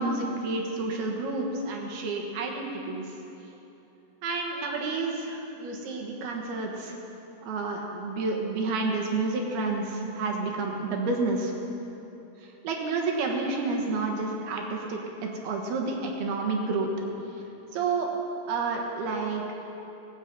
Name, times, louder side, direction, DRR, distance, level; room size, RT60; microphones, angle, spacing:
voice 1, 0.0-3.1 4.2-7.0 7.4-11.5 12.4-16.9 17.7-18.1 18.5-19.6, right 3 dB, 65° right, 1 dB, 2.9 m, -30 dB
18.5 x 8.3 x 7.5 m, 3.0 s
omnidirectional pair, 5.7 m